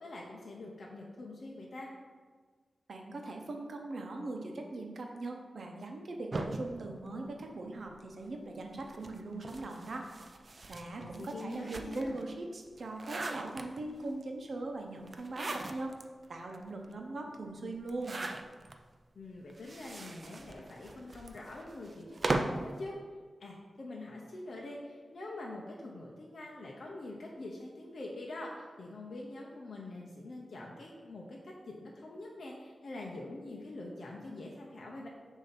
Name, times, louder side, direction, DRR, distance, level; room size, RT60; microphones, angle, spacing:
voice 1, 0.0-1.9 11.0-12.2 19.1-22.9 23.4-35.1, left 2 dB, 60° left, -2 dB, 0.7 m, -45 dB
voice 2, 2.9-10.1 10.7-15.9 16.3-18.2, right 2 dB, 60° right, 2 dB, 0.8 m, -40 dB
sound 1, 6.3-7.9 8.8-12.2 12.7-14.1 15.1-16.0 16.5-16.6 16.8-16.9 17.8-18.8 19.5-22.7, right 2 dB, 40° right, 0.4 m, -39 dB
6.7 x 2.7 x 5.8 m, 1.5 s
wide cardioid pair, 130°, 0 cm